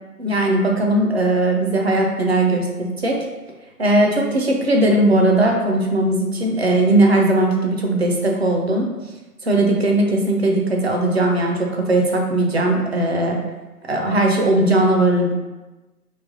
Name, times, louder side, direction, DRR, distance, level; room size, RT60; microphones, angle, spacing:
voice 1, 0.2-3.2 3.8-8.9 9.4-13.4 13.9-15.3, right 1 dB, 45° right, 1 dB, 0.5 m, -18 dB
3.1 x 2.1 x 3.7 m, 1.1 s
hypercardioid pair, 165°, 46 cm